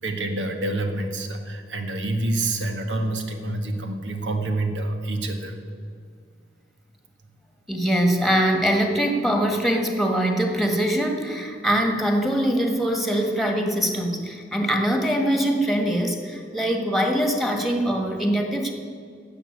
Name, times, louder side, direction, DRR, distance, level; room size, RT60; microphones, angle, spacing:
voice 1, 0.0-5.6, right 2 dB, 80° right, 5 dB, 1.6 m, -27 dB
voice 2, 7.7-18.7, equal, ahead, 3 dB, 1.6 m, -23 dB
12.0 x 7.7 x 9.4 m, 2.1 s
head